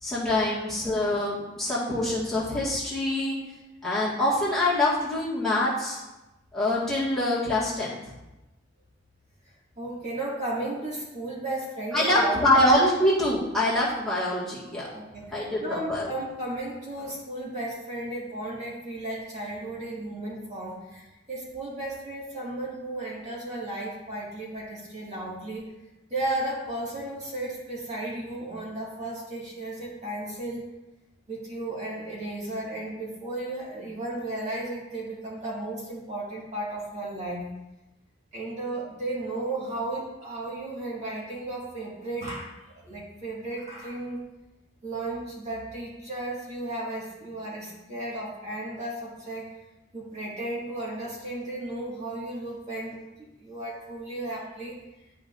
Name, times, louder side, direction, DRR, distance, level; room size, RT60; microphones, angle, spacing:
voice 1, 0.0-3.4 3.8-6.0 6.5-8.0 11.9-14.9 15.3-16.1, left 1 dB, ahead, -9 dB, 1.8 m, -25 dB
voice 2, 9.8-12.6 14.9-25.7 26.1-30.7 31.3-37.5 38.3-44.2 44.8-49.5 49.9-54.8, right 2 dB, 35° right, -6 dB, 2.0 m, -34 dB
11.0 x 5.0 x 2.6 m, 1.0 s
head